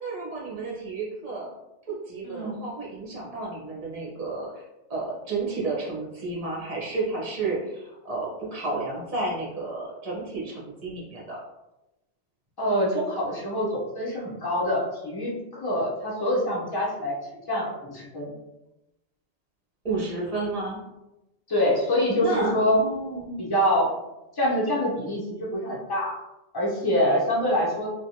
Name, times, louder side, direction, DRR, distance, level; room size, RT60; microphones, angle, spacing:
voice 1, 0.0-1.5 1.9-4.6 4.9-11.4 19.8-20.8 22.2-23.4, right 2 dB, 35° right, -4 dB, 0.9 m, -31 dB
voice 2, 2.2-2.6 12.6-17.1 17.5-18.3 21.5-22.8 23.4-23.9 24.3-26.1 26.5-27.9, equal, 25° left, -4 dB, 0.7 m, -25 dB
3.1 x 2.3 x 2.7 m, 0.95 s
omnidirectional pair, 1.2 m